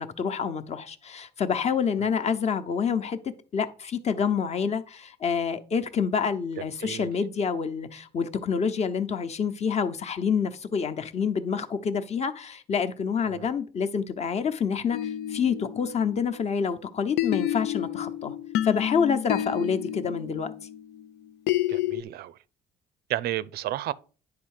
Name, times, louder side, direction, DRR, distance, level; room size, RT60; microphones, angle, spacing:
voice 1, 0.0-18.3 18.6-20.5, left 6 dB, 40° left, 0.9 m, -27 dB
voice 2, 6.6-7.1 13.3-13.5 21.7-22.4 23.1-23.9, right 14 dB, 70° right, 0.5 m, -32 dB
sound 1, 14.9-16.7 17.2-22.0, left 12 dB, 85° left, 0.5 m, -30 dB
9.7 x 3.5 x 6.5 m
cardioid pair, 110°, 17 cm